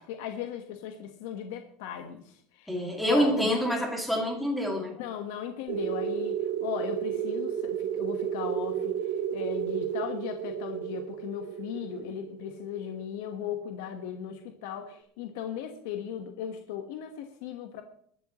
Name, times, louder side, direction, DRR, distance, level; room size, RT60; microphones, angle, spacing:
voice 1, 0.0-3.6 4.9-17.8, left 9 dB, 70° left, 5 dB, 1.3 m, -37 dB
voice 2, 2.7-5.0, equal, ahead, 1 dB, 2.3 m, -27 dB
sound 1, 5.7-14.0, right 9 dB, 80° right, 1.7 m, -32 dB
23.0 x 11.5 x 3.1 m, 0.62 s
cardioid pair, 175°, 0 cm